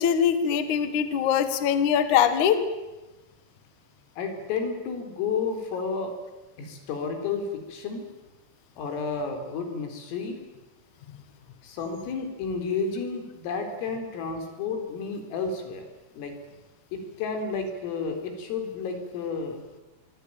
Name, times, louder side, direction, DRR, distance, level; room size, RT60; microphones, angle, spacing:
voice 1, 0.0-2.6, left 8 dB, 55° left, 10 dB, 2.3 m, -22 dB
voice 2, 4.2-6.1 6.6-8.1 8.8-10.4 11.6-15.9 16.1-16.3 16.9-19.6, left 5 dB, 85° left, 5 dB, 6.5 m, -31 dB
25.5 x 22.0 x 9.2 m, 1.1 s
omnidirectional pair, 5.8 m